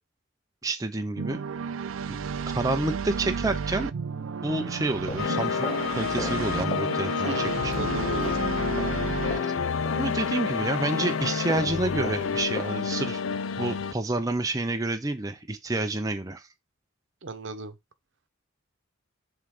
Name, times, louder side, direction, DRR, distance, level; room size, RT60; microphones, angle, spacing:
voice 1, 0.6-1.4 2.1-2.2 2.5-3.9 4.4-8.0 9.4-9.5 9.9-13.2 13.6-16.4, right 2 dB, 15° right, 0.6 m, -29 dB
sound 1, 1.2-9.4, right 6 dB, 85° right, 0.4 m, -32 dB
sound 2, 4.7-12.9, left 2 dB, 30° left, 0.7 m, -40 dB
sound 3, 5.2-13.9, left 6 dB, 80° left, 0.5 m, -29 dB
voice 2, 7.3-8.4 17.2-17.7, right 2 dB, 65° right, 0.9 m, -35 dB
5.6 x 3.8 x 4.8 m
head